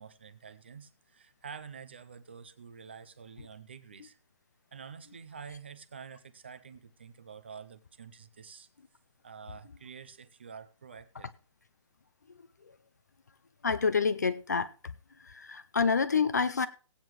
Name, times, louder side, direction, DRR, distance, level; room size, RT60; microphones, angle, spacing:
voice 1, 0.0-4.2 4.7-8.7 9.2-11.3, right 6 dB, 20° right, 0.5 m, -48 dB
voice 2, 13.6-14.7 15.2-16.7, left 5 dB, 35° left, 0.4 m, -28 dB
17.0 x 9.0 x 3.1 m
hypercardioid pair, 180°, 17 cm